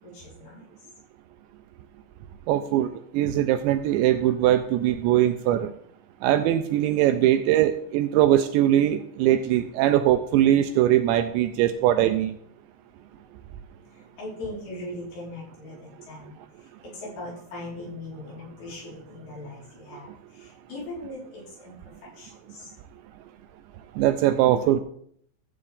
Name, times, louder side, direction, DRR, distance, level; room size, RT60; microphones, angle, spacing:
voice 1, 0.0-0.6 13.9-21.8 22.2-22.7, left 2 dB, 60° left, -7 dB, 6.6 m, -40 dB
voice 2, 2.5-2.9 3.1-5.7 6.2-12.3 24.0-24.8, right 12 dB, 80° right, 8 dB, 2.7 m, -21 dB
14.0 x 8.5 x 3.6 m, 0.64 s
omnidirectional pair, 5.5 m